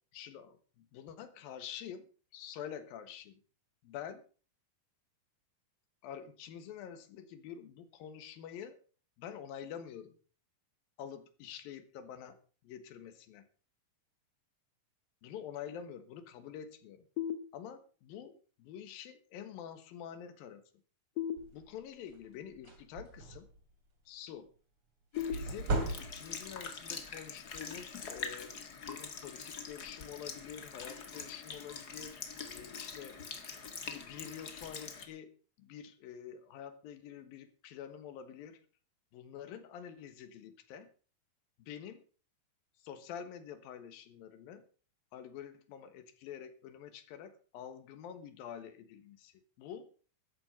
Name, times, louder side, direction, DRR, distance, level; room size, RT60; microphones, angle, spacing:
voice 1, 0.1-3.4 3.8-4.2 6.0-8.8 9.2-10.2 11.0-12.4 12.6-13.5 15.2-17.0 17.5-20.6 21.5-23.5 24.1-24.5 25.3-28.6 28.9-32.2 32.5-33.2 33.8-35.3 35.6-38.6 39.1-40.9 41.6-42.0 42.8-44.6 45.1-49.9, left 9 dB, 90° left, 10 dB, 3.1 m, -47 dB
sound 1, 17.2-18.1 21.1-22.2 25.2-26.2, left 9 dB, 65° left, 1.7 m, -40 dB
sound 2, 21.4-21.7 22.1-22.3 22.5-23.6 25.3-26.5, right 2 dB, 40° right, 3.1 m, -36 dB
Sink (filling or washing) / Liquid, 25.1-35.1, left 5 dB, 40° left, 1.6 m, -44 dB
13.5 x 11.0 x 5.3 m, 0.39 s
omnidirectional pair, 4.0 m